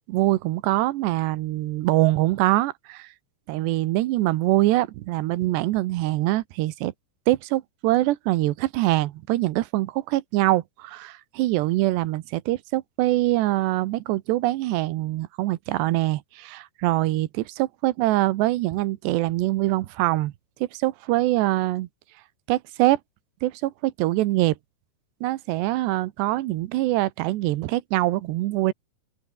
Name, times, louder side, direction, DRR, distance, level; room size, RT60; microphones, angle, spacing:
voice 1, 0.1-3.1 3.5-6.9 7.3-20.3 20.7-21.9 22.5-23.0 23.4-24.5 25.2-28.7, right 17 dB, 80° right, 3.1 m, -24 dB
open air
omnidirectional pair, 4.9 m